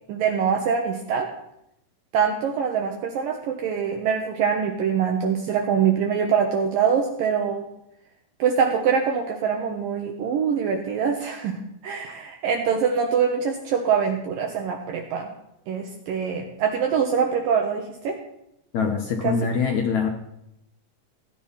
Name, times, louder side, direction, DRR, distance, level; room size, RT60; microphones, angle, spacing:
voice 1, 0.1-1.3 2.1-7.7 8.4-15.3 15.7-18.2 19.2-19.4, right 7 dB, 65° right, 2 dB, 2.7 m, -24 dB
voice 2, 18.7-20.1, left 5 dB, 65° left, 4 dB, 2.0 m, -23 dB
17.0 x 10.5 x 5.7 m, 0.82 s
omnidirectional pair, 4.7 m